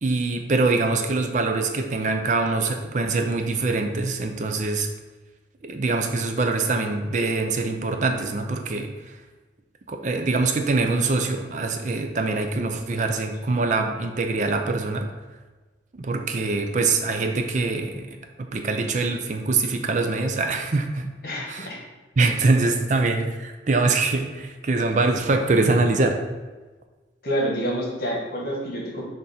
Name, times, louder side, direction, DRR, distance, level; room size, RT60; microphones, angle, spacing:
voice 1, 0.0-4.9 5.6-8.9 9.9-15.1 15.9-21.1 21.5-21.7 22.2-26.2, right 3 dB, 40° right, 5 dB, 0.4 m, -24 dB
voice 2, 21.2-21.8 27.2-29.0, equal, 50° left, -2 dB, 1.4 m, -28 dB
6.4 x 2.6 x 5.6 m, 1.3 s
head